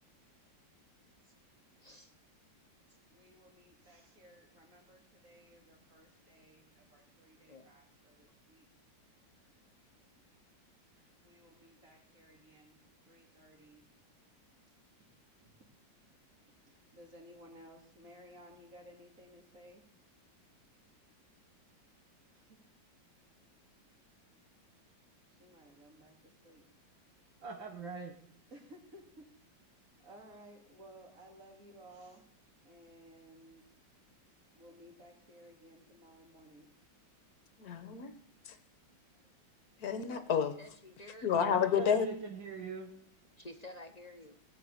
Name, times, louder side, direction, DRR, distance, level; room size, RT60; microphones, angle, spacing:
voice 1, 1.8-2.1 7.5-7.7 40.1-40.2 40.6-41.6 43.4-44.3, left 1 dB, 40° left, 5 dB, 0.6 m, -51 dB
voice 2, 3.1-8.7 10.9-12.8 13.0-13.8 14.7-15.1 15.4-15.7 16.7-19.8 22.3-22.6 25.4-26.6 28.5-29.3 30.0-32.3 32.6-33.6 34.5-36.7 39.1-39.2, equal, 45° right, 0 dB, 3.2 m, -58 dB
voice 3, 27.4-28.2 41.3-41.5 41.8-42.9, right 4 dB, 75° right, 2 dB, 2.2 m, -42 dB
voice 4, 37.6-38.2 38.4-38.6 39.8-40.5 41.2-42.1, left 7 dB, 55° left, 10 dB, 1.5 m, -30 dB
17.5 x 5.9 x 8.7 m, 0.63 s
omnidirectional pair, 2.1 m